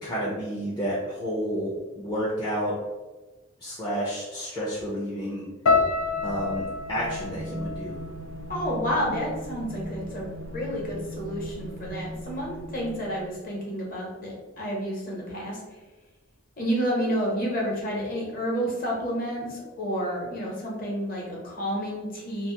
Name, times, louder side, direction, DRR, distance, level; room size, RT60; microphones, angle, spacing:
voice 1, 0.0-2.8 3.6-5.5 6.2-8.0, equal, 20° left, -7 dB, 0.4 m, -30 dB
sound 1, 5.7-9.9 10.1-10.9 11.5-11.7, left 4 dB, 85° left, 0.4 m, -30 dB
sound 2, 5.8-13.5, right 1 dB, 75° right, 0.3 m, -39 dB
voice 2, 8.5-10.3 10.5-15.6 16.6-22.5, equal, 45° left, -3 dB, 0.8 m, -30 dB
2.5 x 2.2 x 2.8 m, 1.2 s
head